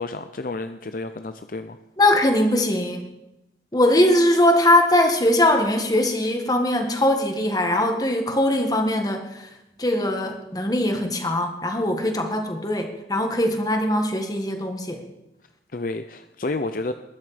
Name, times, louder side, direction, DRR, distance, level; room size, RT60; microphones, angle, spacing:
voice 1, 0.0-1.8 15.7-16.9, left 2 dB, 50° left, 9 dB, 0.6 m, -30 dB
voice 2, 2.0-3.1 3.7-9.5 9.8-15.0, left 1 dB, 20° left, 4 dB, 1.8 m, -21 dB
20.5 x 11.0 x 5.1 m, 0.91 s
head